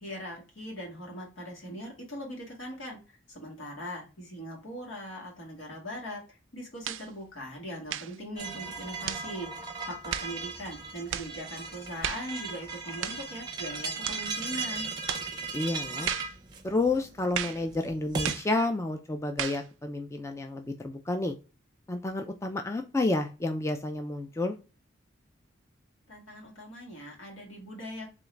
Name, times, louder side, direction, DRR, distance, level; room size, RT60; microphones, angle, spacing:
voice 1, 0.0-3.0 3.3-9.5 9.9-14.9 26.1-28.1, equal, 80° left, -2 dB, 1.8 m, -40 dB
sound 1, 6.8-7.1 7.9-8.2 9.1-9.3 10.1-10.4 11.1-11.3 12.0-12.3 13.0-13.3 14.0-14.3 15.1-15.3 16.1-16.4 17.3-17.6 18.2-18.5 19.4-19.7, right 10 dB, 75° right, 0.4 m, -34 dB
sound 2, 8.4-18.4, right 4 dB, 20° right, 0.7 m, -37 dB
voice 2, 15.5-16.1 16.6-21.3 21.9-24.6, left 2 dB, 15° left, 4 dB, 0.3 m, -30 dB
3.7 x 3.0 x 3.2 m, 0.32 s
head